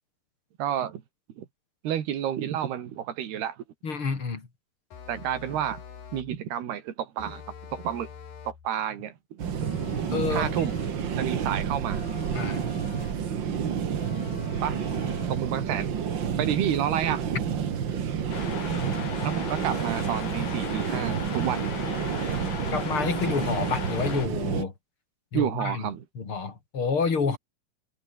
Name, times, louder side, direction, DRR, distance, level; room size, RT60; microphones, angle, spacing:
voice 1, 0.6-1.0 1.4-1.5 1.8-3.6 5.1-5.8 6.1-7.4 7.7-8.1 8.5-9.8 10.3-12.0 14.6-14.8 15.3-16.0 16.4-17.3 17.9-18.1 18.8-21.9 25.3-26.1, right 10 dB, 80° right, 4.2 m, -30 dB
voice 2, 3.8-4.5 10.1-10.7 12.3-12.6 22.7-24.7 25.3-25.8 26.2-27.4, left 5 dB, 35° left, 4.4 m, -28 dB
sound 1, 4.9-6.4 7.2-8.7 9.6-11.1 11.9-13.3 14.0-15.5, left 7 dB, 65° left, 5.1 m, -44 dB
sound 2, 9.4-24.6, right 7 dB, 50° right, 1.4 m, -30 dB
sound 3, 18.3-24.3, left 6 dB, 80° left, 6.3 m, -36 dB
omnidirectional pair, 4.5 m